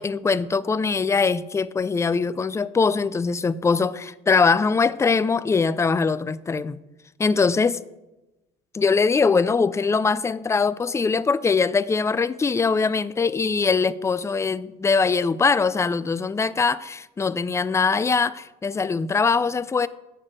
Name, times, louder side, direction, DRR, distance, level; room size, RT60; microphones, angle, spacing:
voice 1, 0.0-6.8 7.2-7.8 8.7-19.9, left 4 dB, 15° left, 0.4 m, -22 dB
6.9 x 6.6 x 7.5 m
supercardioid pair, 90°, 18 cm